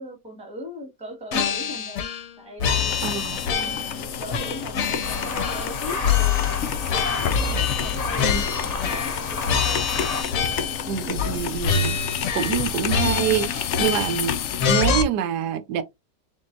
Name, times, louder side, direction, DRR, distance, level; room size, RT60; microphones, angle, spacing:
voice 1, 0.0-2.1 2.4-2.9 3.4-9.8, equal, 5° right, 1.3 m, -39 dB
sound 1, 1.3-2.3 2.6-4.0 4.3-5.8 6.0-9.2 9.5-10.8 11.2-11.4 11.6-12.6 12.9-14.3 14.6-15.0, left 6 dB, 60° left, 1.1 m, -25 dB
sound 2, 2.6-14.7, left 8 dB, 80° left, 0.6 m, -30 dB
voice 2, 3.0-3.4 8.2-8.4 10.9-12.0 12.3-14.4 14.7-15.8, right 9 dB, 75° right, 1.2 m, -26 dB
sound 3, 5.0-10.2, left 4 dB, 35° left, 0.6 m, -31 dB
4.6 x 3.7 x 2.5 m
omnidirectional pair, 1.9 m